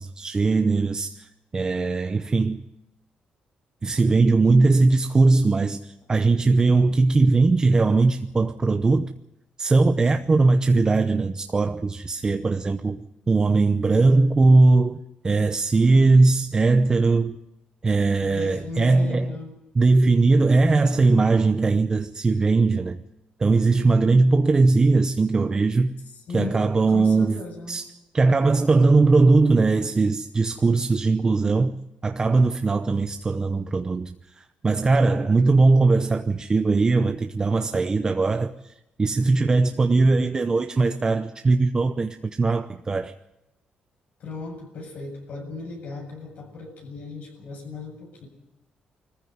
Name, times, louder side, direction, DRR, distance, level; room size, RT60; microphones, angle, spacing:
voice 1, 0.0-2.6 3.8-9.1 9.6-15.0 15.2-17.4 17.8-19.4 19.8-23.0 23.4-25.9 26.3-27.4 27.7-27.8 28.1-31.7 32.0-38.7 39.0-43.1, right 3 dB, 25° right, 0.8 m, -20 dB
voice 2, 18.2-19.5 26.3-27.8 44.2-48.3, left 3 dB, 65° left, 7.4 m, -36 dB
22.0 x 14.5 x 9.7 m
cardioid pair, 110°, 3 cm